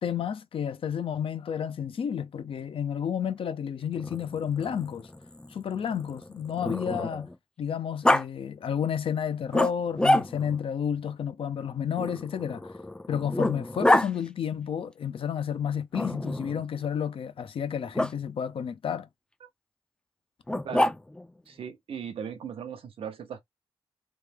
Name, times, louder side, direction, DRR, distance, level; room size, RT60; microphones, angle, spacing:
voice 1, 0.0-5.1 5.5-7.3 7.6-12.7 13.1-19.1, left 8 dB, 75° left, 0.6 m, -31 dB
Growling, 4.0-7.4 8.0-8.2 9.5-10.6 12.0-14.1 15.9-16.6 17.9-18.1 20.5-21.3, left 1 dB, 10° left, 0.4 m, -27 dB
voice 2, 21.5-23.4, right 7 dB, 80° right, 0.7 m, -38 dB
3.1 x 2.1 x 3.4 m
cardioid pair, 55°, 9 cm